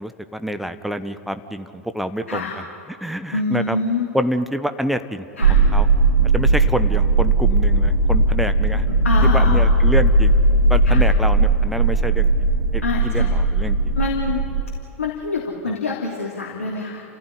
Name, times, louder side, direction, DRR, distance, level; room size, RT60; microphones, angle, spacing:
voice 1, 0.0-2.5 3.0-3.8 4.1-5.9 6.3-8.9 9.2-10.3 10.7-12.3 12.7-13.8, equal, ahead, 10 dB, 1.2 m, -27 dB
voice 2, 3.3-4.1 5.4-5.6 9.0-9.7 10.8-11.0 12.8-13.3 14.0-14.5 15.0-17.0, left 3 dB, 70° left, -1 dB, 3.1 m, -25 dB
sound 1, 5.4-14.6, right 2 dB, 75° right, 7.0 m, -17 dB
30.0 x 15.5 x 9.8 m, 2.6 s
figure-of-eight pair, 90°, 8 cm